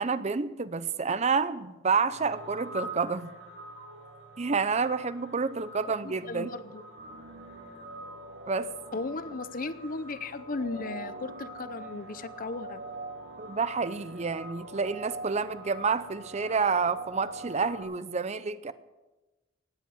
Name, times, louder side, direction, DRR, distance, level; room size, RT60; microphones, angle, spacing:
voice 1, 0.0-3.3 4.4-6.6 8.5-8.7 13.4-18.7, right 5 dB, 35° right, 15 dB, 0.6 m, -29 dB
sound 1, 2.1-17.8, right 1 dB, 65° right, 2.5 m, -43 dB
voice 2, 5.8-6.8 8.9-12.8, left 3 dB, 45° left, 14 dB, 0.7 m, -36 dB
18.5 x 8.2 x 7.9 m, 1.1 s
head